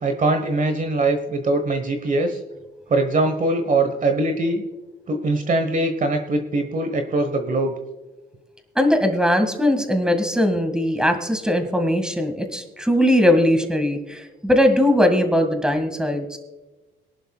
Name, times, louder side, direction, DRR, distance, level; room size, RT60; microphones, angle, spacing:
voice 1, 0.0-2.4 2.9-4.6 5.1-7.7, right 2 dB, 40° right, 7 dB, 1.2 m, -22 dB
voice 2, 8.8-16.4, left 1 dB, 5° right, 5 dB, 1.9 m, -20 dB
22.5 x 11.5 x 2.4 m, 1.2 s
cardioid pair, 90°, 20 cm